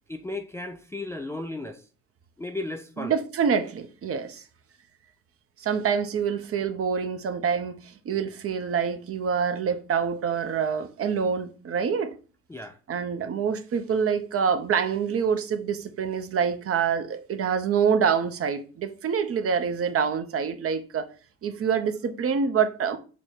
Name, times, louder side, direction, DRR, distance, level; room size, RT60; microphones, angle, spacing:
voice 1, 0.1-1.8 2.4-3.1 12.5-12.8, left 2 dB, 10° left, 0.3 m, -35 dB
voice 2, 3.0-4.4 5.6-12.1 12.9-21.1 21.4-23.0, right 6 dB, 40° right, 0.6 m, -26 dB
4.2 x 2.2 x 4.2 m
hypercardioid pair, 50°, 36 cm